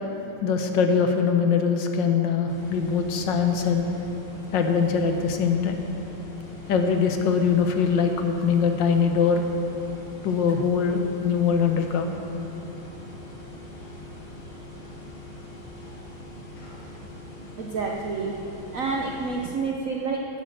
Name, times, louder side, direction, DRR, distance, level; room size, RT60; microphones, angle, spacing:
voice 1, 0.4-3.9 4.5-5.8 6.7-9.4 10.2-12.2, left 6 dB, 65° left, 5 dB, 1.5 m, -22 dB
sound 1, 2.5-19.5, left 1 dB, 90° left, 3.1 m, -42 dB
voice 2, 17.6-18.4 18.7-20.2, right 4 dB, 55° right, -1 dB, 1.0 m, -28 dB
11.0 x 10.5 x 6.6 m, 3.0 s
omnidirectional pair, 2.2 m